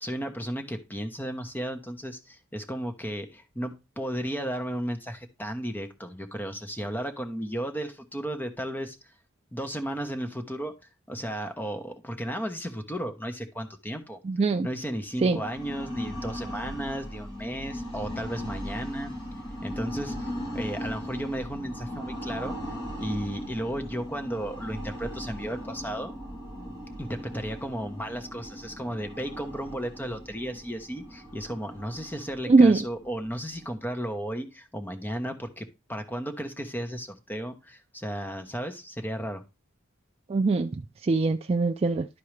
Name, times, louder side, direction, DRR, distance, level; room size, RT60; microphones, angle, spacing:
voice 1, 0.0-9.0 9.5-10.7 11.1-14.2 14.6-19.1 19.6-22.6 23.0-26.1 27.0-39.4, equal, 10° left, 1.0 m, -34 dB
voice 2, 14.3-14.7 15.2-15.4 32.5-32.8 40.3-40.7 41.1-42.1, right 3 dB, 30° right, 0.3 m, -21 dB
sound 1, 15.1-33.9, equal, 25° left, 2.5 m, -38 dB
12.0 x 4.7 x 3.2 m
head